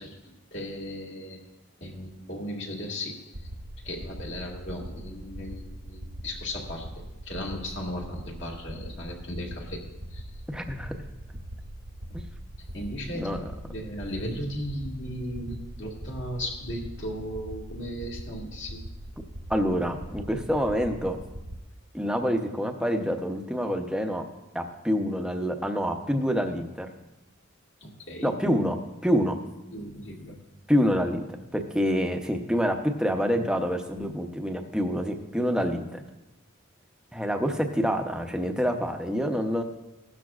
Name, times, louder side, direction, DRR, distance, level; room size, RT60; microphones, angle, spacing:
voice 1, 0.0-1.4 1.8-3.2 3.8-9.8 10.1-10.3 12.1-12.2 12.7-13.3 13.6-18.8 27.8-28.3 29.7-30.4, equal, 55° left, -2 dB, 2.0 m, -36 dB
sound 1, 3.3-21.6, right 1 dB, 85° right, 1.3 m, -41 dB
voice 2, 10.5-10.9 12.1-12.2 13.1-13.4 19.5-21.2 21.9-24.2 24.5-26.9 28.2-29.4 30.7-31.2 31.5-36.0 37.1-39.6, equal, 5° right, 4 dB, 0.7 m, -27 dB
16.0 x 12.5 x 2.4 m, 0.98 s
head